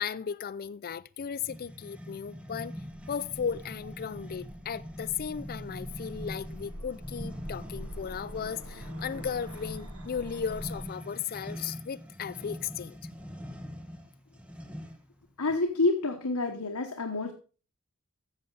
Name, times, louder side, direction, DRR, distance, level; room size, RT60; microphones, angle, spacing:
voice 1, 0.0-2.7 3.1-13.0, left 7 dB, 45° left, 0.4 m, -35 dB
sound 1, 1.4-15.1, equal, 5° right, 1.1 m, -43 dB
sound 2, 2.5-10.8, equal, 70° right, 2.0 m, -46 dB
voice 2, 15.4-17.3, left 3 dB, 75° left, 1.2 m, -28 dB
13.5 x 7.5 x 3.9 m
head